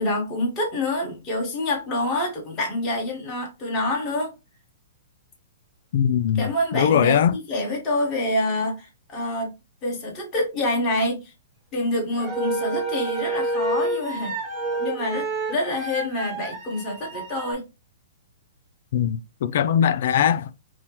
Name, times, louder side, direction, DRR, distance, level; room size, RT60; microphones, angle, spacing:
voice 1, 0.0-4.3 6.3-9.5 9.8-11.3 11.7-14.3 14.8-17.7, left 1 dB, 20° left, 1.3 m, -27 dB
voice 2, 5.9-7.4 18.9-20.7, left 8 dB, 55° left, 0.4 m, -21 dB
sound 1, 12.1-17.5, right 2 dB, 20° right, 1.1 m, -28 dB
5.7 x 2.1 x 2.9 m
hypercardioid pair, 165°, 0 cm